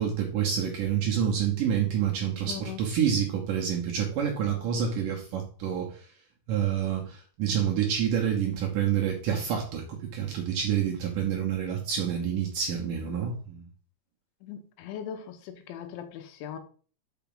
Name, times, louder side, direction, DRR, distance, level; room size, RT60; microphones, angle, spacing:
voice 1, 0.0-6.1 6.5-13.7, right 8 dB, 75° right, 2.0 m, -28 dB
voice 2, 2.5-2.8 14.4-16.6, left 8 dB, 85° left, 3.3 m, -39 dB
5.9 x 5.7 x 5.5 m
omnidirectional pair, 5.3 m